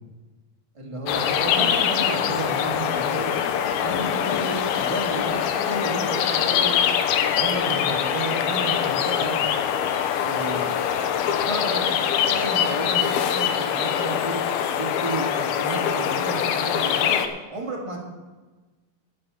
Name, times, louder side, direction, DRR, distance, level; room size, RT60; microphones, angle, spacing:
voice 1, 0.7-3.4 3.8-6.7 7.3-9.4 10.2-10.7 11.3-12.0 12.3-14.4 14.7-17.2 17.5-18.0, right 2 dB, 10° right, -1 dB, 1.6 m, -32 dB
sound 1, 1.1-17.3, left 9 dB, 85° left, 2.7 m, -23 dB
11.5 x 6.8 x 8.6 m, 1.2 s
omnidirectional pair, 4.3 m